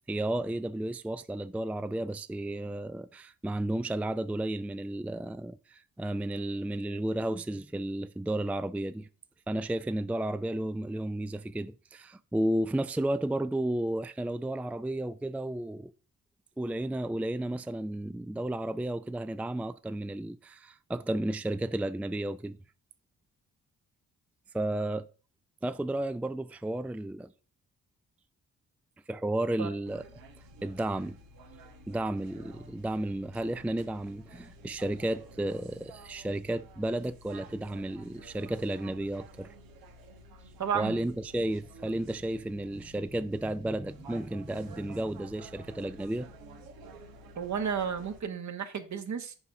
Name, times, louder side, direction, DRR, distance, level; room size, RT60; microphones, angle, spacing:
voice 1, 0.1-9.1 9.5-15.9 16.6-22.6 24.5-25.1 25.6-27.3 29.1-30.0 30.6-31.2 31.9-39.5 40.7-46.3, right 1 dB, 5° right, 0.4 m, -33 dB
sound 1, 29.9-48.2, right 1 dB, 85° right, 1.2 m, -52 dB
voice 2, 40.6-41.1 47.4-49.3, right 7 dB, 55° right, 1.5 m, -32 dB
7.1 x 4.7 x 5.4 m
supercardioid pair, 45°, 34 cm